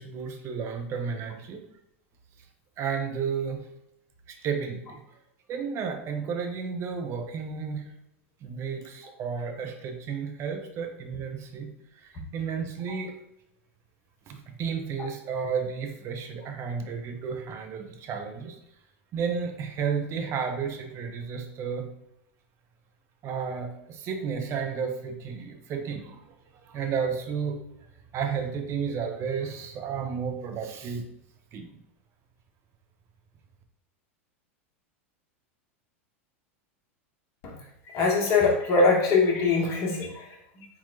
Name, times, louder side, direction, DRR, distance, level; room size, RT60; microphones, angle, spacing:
voice 1, 0.0-1.6 2.8-3.6 4.3-5.0 5.5-7.9 8.4-11.7 12.0-13.2 14.3-18.6 19.1-21.9 23.2-26.3 26.6-27.6 28.1-31.1 31.5-31.7, right 6 dB, 40° right, 4 dB, 0.8 m, -32 dB
voice 2, 37.9-40.7, left 4 dB, 45° left, -1 dB, 1.5 m, -23 dB
4.4 x 3.9 x 2.7 m, 0.80 s
hypercardioid pair, 95°, 7 cm